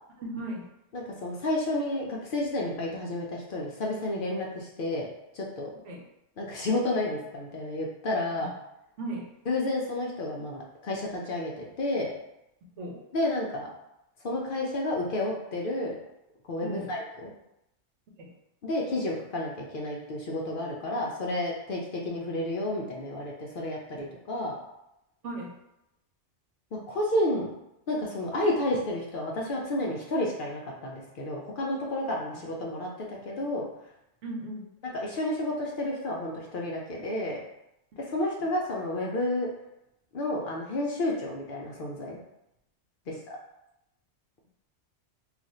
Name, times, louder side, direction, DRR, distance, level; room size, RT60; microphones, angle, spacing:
voice 1, 0.2-0.7 5.8-6.1 8.4-8.5 9.0-9.3 12.8-13.0 16.6-16.9 18.2-18.3 25.2-25.5 32.3-32.4 34.2-34.6 38.4-38.5 43.1-43.2, right 1 dB, 85° right, 0 dB, 1.0 m, -37 dB
voice 2, 0.9-5.1 5.3-5.7 6.4-8.5 9.5-12.1 13.1-13.7 14.2-16.0 16.5-17.3 18.6-24.6 26.7-27.5 27.9-33.7 34.9-37.4 38.1-39.5 40.1-42.2 43.1-43.4, left 1 dB, 60° left, -2 dB, 0.6 m, -31 dB
2.4 x 2.4 x 4.1 m, 0.87 s
omnidirectional pair, 1.2 m